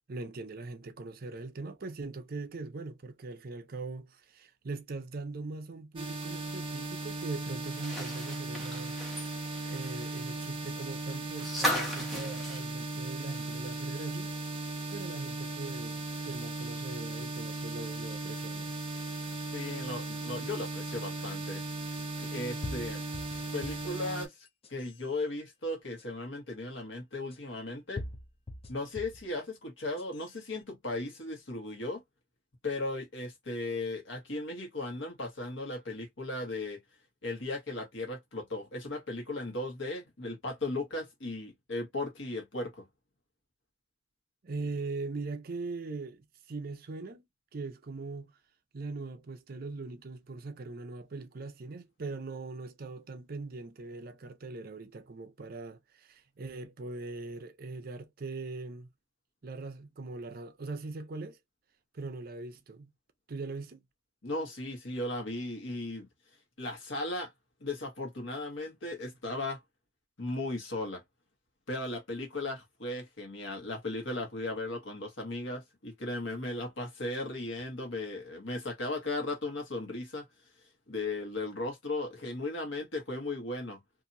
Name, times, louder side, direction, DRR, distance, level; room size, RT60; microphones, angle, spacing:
voice 1, 0.1-9.2 9.7-14.3 14.9-18.7 44.4-47.3 47.5-48.3 48.7-58.9 59.4-61.4 61.9-62.9 63.3-63.8, right 3 dB, 50° right, 0.5 m, -41 dB
sound 1, 6.0-24.3, right 2 dB, 25° right, 1.0 m, -37 dB
sound 2, 7.6-13.7 14.0-14.1 15.5-15.6, equal, ahead, 0.9 m, -37 dB
voice 2, 19.5-21.6 22.2-23.0 23.5-28.0 28.7-32.0 32.6-36.8 37.2-42.8 64.2-66.1 66.6-67.3 67.6-69.6 70.2-71.0 71.7-80.2 80.9-83.8, left 2 dB, 80° left, 1.3 m, -36 dB
sound 3, 20.6-20.7 22.0-22.1 22.6-23.9 24.5-25.0 26.0-26.1 27.3-27.4 28.0-29.3 29.8-30.3, left 2 dB, 30° left, 0.5 m, -42 dB
2.8 x 2.6 x 2.6 m
head